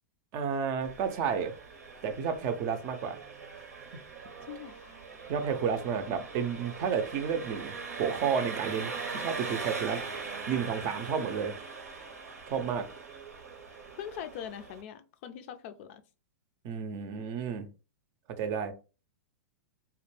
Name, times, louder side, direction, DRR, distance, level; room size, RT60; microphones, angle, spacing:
voice 1, 0.3-1.5 2.0-3.2 5.3-10.0 10.5-11.5 12.5-12.9 16.6-17.7 18.4-18.7, right 7 dB, 45° right, 0.5 m, -31 dB
Engine, 0.8-14.8, right 4 dB, 90° right, 0.8 m, -41 dB
voice 2, 4.4-5.0 14.0-16.0, left 9 dB, 55° left, 0.4 m, -42 dB
2.1 x 2.0 x 3.1 m
hypercardioid pair, 110°, 8 cm